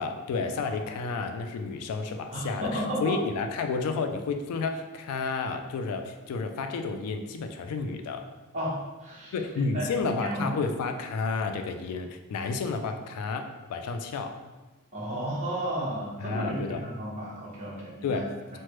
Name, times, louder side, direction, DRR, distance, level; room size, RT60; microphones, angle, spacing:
voice 1, 0.0-8.2 9.3-14.4 16.2-16.8 18.0-18.3, left 4 dB, 75° left, 10 dB, 0.3 m, -31 dB
voice 2, 2.3-3.1 8.5-9.9 10.2-10.5 14.9-18.2 18.5-18.6, right 1 dB, 35° right, -7 dB, 0.9 m, -33 dB
3.2 x 2.1 x 3.0 m, 1.2 s
head